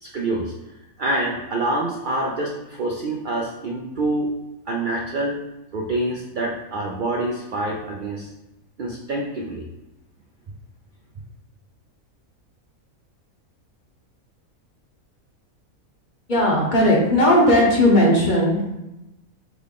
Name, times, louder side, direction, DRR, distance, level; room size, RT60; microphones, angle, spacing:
voice 1, 0.0-0.5 1.0-4.3 4.7-5.4 5.7-8.3 8.8-9.7, right 2 dB, 85° right, -1 dB, 0.4 m, -26 dB
voice 2, 16.3-18.6, left 1 dB, 40° left, -3 dB, 0.8 m, -17 dB
3.7 x 3.6 x 3.6 m, 0.95 s
omnidirectional pair, 1.5 m